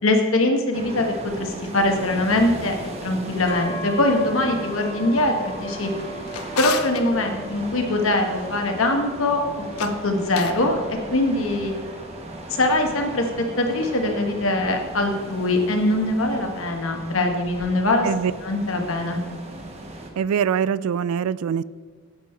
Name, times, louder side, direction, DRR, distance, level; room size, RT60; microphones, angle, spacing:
voice 1, 0.0-2.8 3.0-5.9 6.6-10.8 11.1-11.7 12.5-13.2 13.6-18.1 18.4-19.2, left 2 dB, 65° left, 3 dB, 1.4 m, -22 dB
sound 1, 0.7-20.1, right 1 dB, 30° right, 1.2 m, -37 dB
sound 2, 3.5-17.2, right 1 dB, 25° left, 1.4 m, -40 dB
Drawer open or close, 5.8-7.0 9.6-10.7, left 7 dB, 85° left, 0.7 m, -33 dB
voice 2, 20.2-21.6, right 7 dB, 80° right, 18 dB, 0.3 m, -23 dB
9.5 x 8.4 x 4.4 m, 1.5 s
head